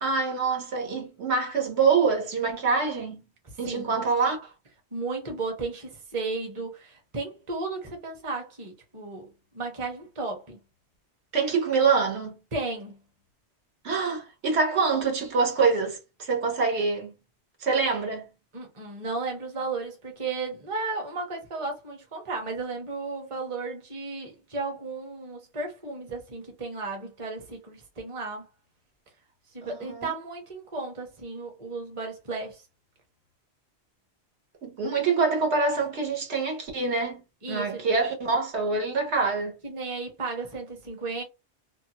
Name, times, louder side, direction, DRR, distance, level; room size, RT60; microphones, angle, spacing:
voice 1, 0.0-3.2 3.6-4.5 11.3-12.3 13.8-17.1 17.6-18.2 29.6-30.1 34.6-39.5, right 4 dB, 80° right, 1.2 m, -25 dB
voice 2, 3.4-3.9 4.9-10.6 12.5-13.0 18.5-28.5 29.5-32.6 37.4-37.8 39.6-41.2, right 3 dB, 30° right, 0.8 m, -34 dB
2.7 x 2.2 x 2.9 m
omnidirectional pair, 1.1 m